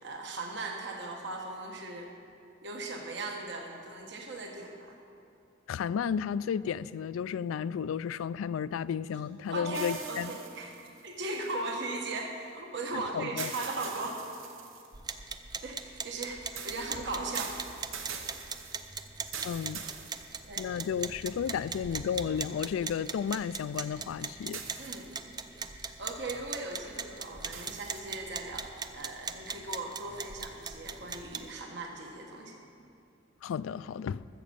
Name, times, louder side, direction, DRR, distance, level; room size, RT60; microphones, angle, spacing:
voice 1, 0.0-2.1 2.6-5.0 9.5-10.8 11.0-14.2 15.6-17.5 20.4-20.7 24.8-25.2 25.8-32.6, right 2 dB, 60° right, 1.1 m, -38 dB
voice 2, 5.7-10.3 13.1-13.5 19.4-19.8 20.6-24.8 33.4-34.3, left 7 dB, 85° left, 0.3 m, -33 dB
sound 1, 9.7-11.9 13.4-15.0 16.6-20.8 21.5-21.6 24.5-25.3 27.5-28.3, right 7 dB, 85° right, 1.1 m, -43 dB
sound 2, 14.9-31.5, right 5 dB, 20° right, 0.4 m, -41 dB
13.5 x 7.3 x 6.9 m
head